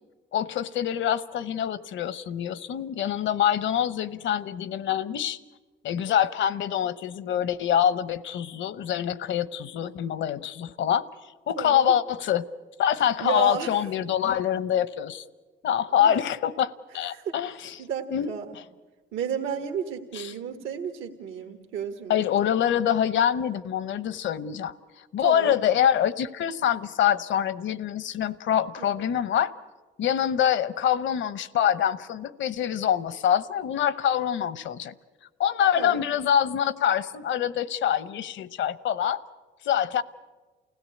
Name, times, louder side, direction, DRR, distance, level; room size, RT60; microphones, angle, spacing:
voice 1, 0.3-5.4 5.8-11.0 11.5-12.4 12.8-15.2 15.6-17.7 18.1-18.3 20.1-20.3 22.1-24.7 25.1-29.5 30.0-34.9 35.4-39.2 39.6-40.0, left 9 dB, 70° left, 17 dB, 0.9 m, -25 dB
voice 2, 11.6-11.9 13.2-13.7 16.0-16.2 17.1-17.4 17.8-18.6 19.1-22.2 25.2-25.5 28.8-29.1 35.8-36.1, right 8 dB, 85° right, 4 dB, 1.7 m, -33 dB
29.0 x 16.5 x 8.5 m, 1.3 s
cardioid pair, 90°, 20 cm